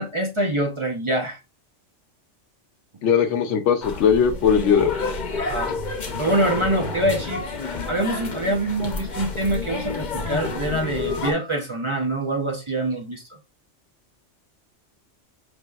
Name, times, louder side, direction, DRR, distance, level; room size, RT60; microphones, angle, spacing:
voice 1, 0.0-1.4 5.4-5.8 6.2-7.5 7.9-13.2, right 1 dB, 35° right, 0.6 m, -25 dB
voice 2, 3.0-4.9, left 7 dB, 80° left, 1.0 m, -19 dB
sound 1, 3.8-11.3, left 3 dB, 45° left, 0.8 m, -29 dB
5.2 x 3.1 x 2.3 m
omnidirectional pair, 1.2 m